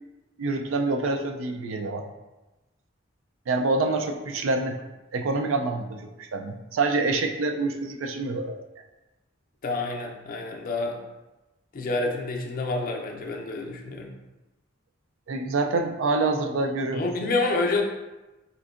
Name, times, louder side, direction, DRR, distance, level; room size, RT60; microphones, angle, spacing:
voice 1, 0.4-2.1 3.5-4.8 5.1-8.6 15.3-17.0, right 3 dB, 80° right, 5 dB, 0.4 m, -26 dB
voice 2, 9.6-11.0 11.7-14.1 16.9-17.8, left 3 dB, 45° left, 1 dB, 0.5 m, -28 dB
4.4 x 2.6 x 2.4 m, 1.1 s
head